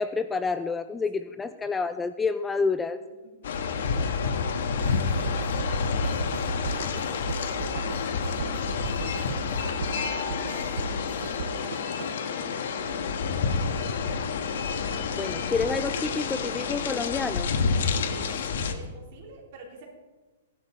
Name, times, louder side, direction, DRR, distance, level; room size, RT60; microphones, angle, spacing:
voice 1, 0.0-3.0 15.1-17.5, left 4 dB, 10° left, 10 dB, 0.3 m, -28 dB
voice 2, 3.2-14.2 18.0-19.8, right 3 dB, 45° right, -1 dB, 3.7 m, -49 dB
sound 1, 3.4-18.7, left 5 dB, 65° left, 1.3 m, -29 dB
sound 2, 4.8-12.1, right 6 dB, 70° right, 0.5 m, -37 dB
16.5 x 11.5 x 4.3 m, 1.2 s
hypercardioid pair, 170°, 0 cm